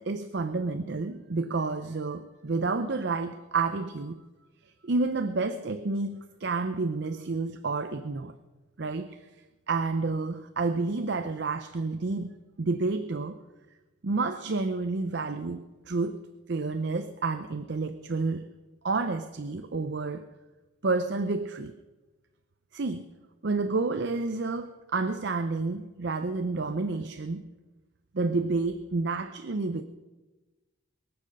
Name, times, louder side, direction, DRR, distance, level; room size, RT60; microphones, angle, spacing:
voice 1, 0.0-4.2 4.8-8.3 8.8-9.2 9.7-13.4 14.0-18.5 18.8-20.3 20.8-21.7 22.7-23.1 23.4-27.4 28.1-29.8, right 3 dB, 55° right, 0.5 m, -30 dB
22.5 x 7.6 x 6.5 m
head